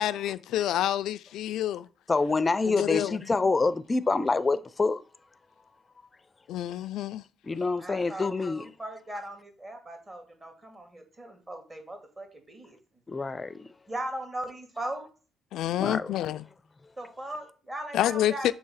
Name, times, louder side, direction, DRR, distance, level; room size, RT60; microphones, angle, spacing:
voice 1, 0.0-1.9 2.7-3.2 6.5-7.2 15.5-16.4 17.9-18.5, left 12 dB, 85° left, 0.3 m, -28 dB
voice 2, 2.1-5.0 7.4-8.7 13.1-13.7 15.8-16.2, left 3 dB, 25° left, 0.5 m, -26 dB
voice 3, 7.8-12.8 13.9-15.1 17.0-18.5, right 1 dB, 25° right, 2.0 m, -38 dB
6.6 x 2.8 x 5.6 m
cardioid pair, 90°, 0 cm